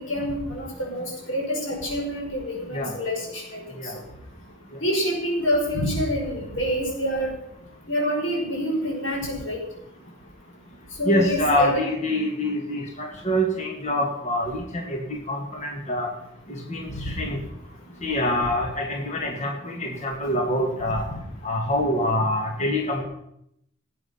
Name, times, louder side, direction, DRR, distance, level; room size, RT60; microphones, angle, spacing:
voice 1, 0.0-3.6 3.9-4.0 4.8-7.3 7.9-9.6 11.0-11.8 16.9-17.0, equal, 90° left, -1 dB, 5.5 m, -27 dB
voice 2, 11.1-16.1 16.5-17.4 18.0-21.0 21.4-23.0, left 1 dB, 35° left, 1 dB, 1.9 m, -25 dB
17.0 x 8.6 x 5.7 m, 0.77 s
head